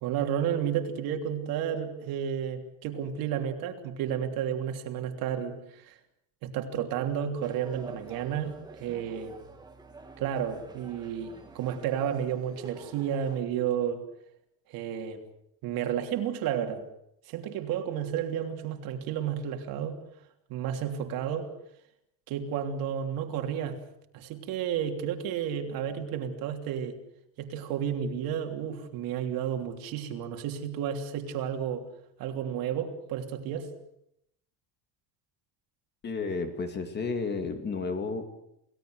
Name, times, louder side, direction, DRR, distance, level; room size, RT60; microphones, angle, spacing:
voice 1, 0.0-5.9 6.4-9.3 10.2-14.0 14.7-15.2 15.6-16.8 17.3-20.0 20.5-21.5 22.3-23.8 24.1-27.0 27.4-31.8 32.2-33.7, right 9 dB, 55° right, 4 dB, 3.2 m, -32 dB
sound 1, 7.4-13.4, right 3 dB, 10° right, 2.0 m, -49 dB
voice 2, 36.0-38.3, left 4 dB, 25° left, 7 dB, 2.3 m, -32 dB
29.0 x 17.5 x 7.9 m, 0.78 s
cardioid pair, 170°, 41 cm